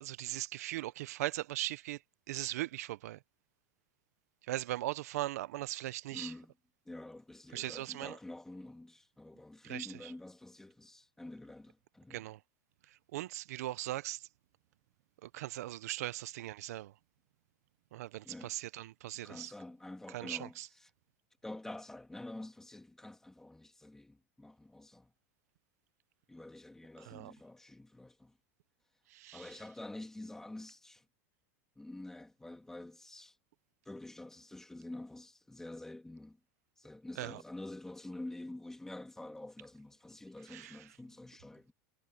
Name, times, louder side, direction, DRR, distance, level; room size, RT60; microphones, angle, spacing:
voice 1, 0.0-2.0 2.3-3.2 4.5-6.3 7.5-8.1 9.6-10.1 12.1-12.4 13.1-14.2 15.2-16.9 17.9-19.5 20.1-20.7 27.0-27.3 29.1-29.5 37.2-37.4 40.5-40.8, right 15 dB, 85° right, 0.7 m, -39 dB
voice 2, 6.1-6.5 6.9-12.3 18.2-18.5 19.2-20.9 21.4-25.1 26.3-28.4 29.3-31.0 31.8-33.4 33.9-36.4 36.8-41.7, left 2 dB, 5° left, 2.0 m, -48 dB
supercardioid pair, 145°, 8 cm